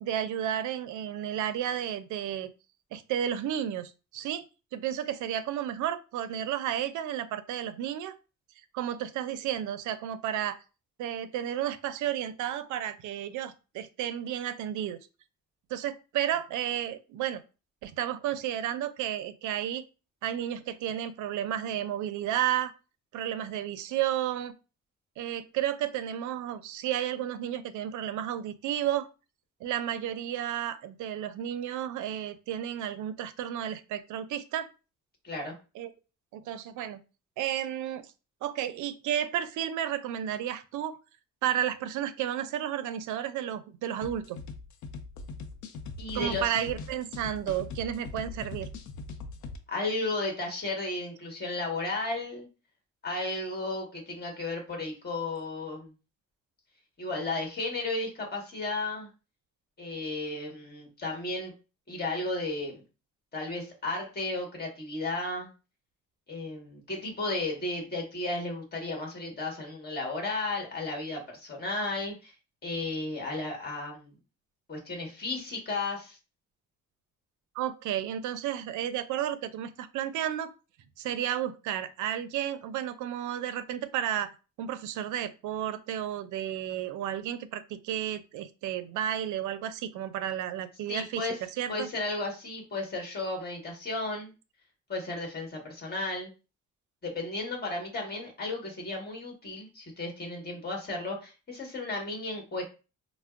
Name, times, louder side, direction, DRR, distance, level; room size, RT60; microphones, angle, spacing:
voice 1, 0.0-2.5 2.9-4.4 4.7-8.1 8.7-10.6 11.0-15.0 15.7-17.4 17.8-19.8 20.2-22.7 23.1-24.5 25.2-29.1 29.6-34.7 35.8-35.9 36.3-37.0 37.4-38.1 38.4-41.0 41.4-44.4 46.1-48.7 77.6-80.5 81.0-84.3 84.6-91.9, right 10 dB, 75° right, 13 dB, 0.4 m, -32 dB
voice 2, 35.2-35.6 46.0-46.5 49.7-52.5 53.0-55.9 57.0-59.1 59.8-61.5 61.9-62.8 63.3-65.5 66.3-72.3 72.6-74.1 74.7-76.2 90.9-91.4 91.7-94.3 94.9-96.3 97.0-102.6, left 2 dB, 30° left, 1 dB, 1.3 m, -34 dB
sound 1, 44.0-49.6, left 3 dB, 75° left, 0.6 m, -41 dB
4.3 x 2.1 x 2.4 m, 0.32 s
cardioid pair, 90°, 30 cm